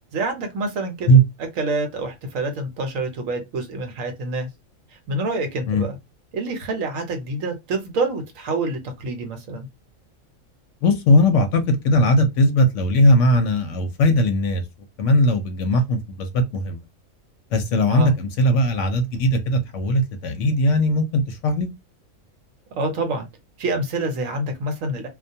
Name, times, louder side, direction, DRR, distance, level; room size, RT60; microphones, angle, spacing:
voice 1, 0.1-1.1 1.6-4.5 5.1-6.0 6.3-9.7 17.9-18.1 22.7-23.3 23.6-25.1, right 2 dB, 75° right, 1.1 m, -27 dB
voice 2, 10.8-14.6 15.0-16.8 17.5-21.7, equal, 70° left, 0.9 m, -19 dB
2.3 x 2.2 x 2.6 m
omnidirectional pair, 1.4 m